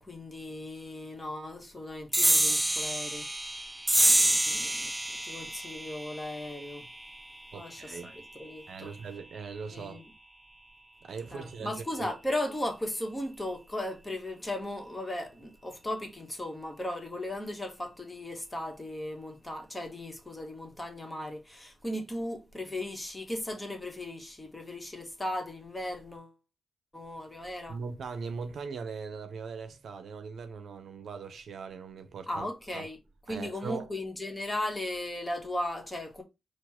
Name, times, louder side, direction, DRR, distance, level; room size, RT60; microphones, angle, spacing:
voice 1, 0.0-3.3 4.1-4.9 5.2-6.9 7.5-8.9 9.7-10.0 11.3-26.3 26.9-27.8 32.3-33.0 33.3-36.2, left 1 dB, 20° left, 1.5 m, -37 dB
sound 1, 2.1-9.0, right 1 dB, 10° right, 0.4 m, -29 dB
voice 2, 7.5-8.1 8.7-10.0 11.0-12.1 27.7-32.9 33.3-33.9, right 5 dB, 70° right, 0.6 m, -40 dB
4.4 x 2.4 x 4.3 m
cardioid pair, 80°, 0 cm